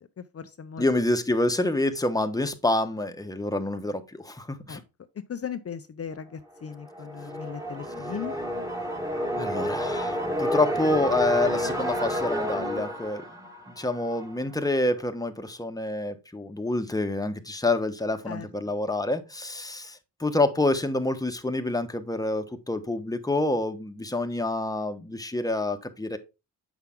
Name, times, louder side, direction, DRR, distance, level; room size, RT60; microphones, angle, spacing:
voice 1, 0.2-0.9 4.7-4.8 5.3-8.4 18.3-18.5, left 7 dB, 40° left, 0.7 m, -37 dB
voice 2, 0.8-4.8 9.4-13.5 13.8-26.2, left 2 dB, 10° left, 1.2 m, -27 dB
sound 1, 6.7-14.4, equal, 10° right, 1.9 m, -30 dB
8.1 x 5.8 x 3.7 m
cardioid pair, 75°, 37 cm